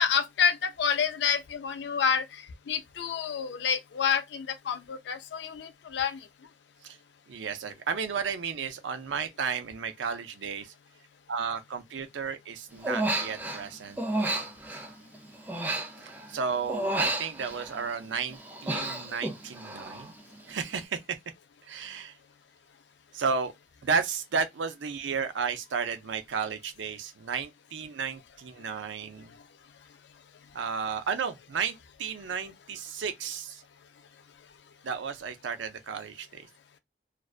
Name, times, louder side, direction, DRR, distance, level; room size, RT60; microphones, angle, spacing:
voice 1, 0.0-6.2, left 7 dB, 70° left, 0.4 m, -28 dB
voice 2, 7.3-10.7 11.3-14.4 16.3-20.1 20.5-21.2 21.7-22.1 23.1-23.5 23.8-29.3 30.5-33.6 34.8-36.5, right 6 dB, 90° right, 0.5 m, -33 dB
Human voice, 12.8-13.7 14.0-16.4 16.7-18.0 18.3-20.1 20.4-20.8, right 1 dB, 10° right, 0.4 m, -32 dB
2.4 x 2.2 x 2.3 m
head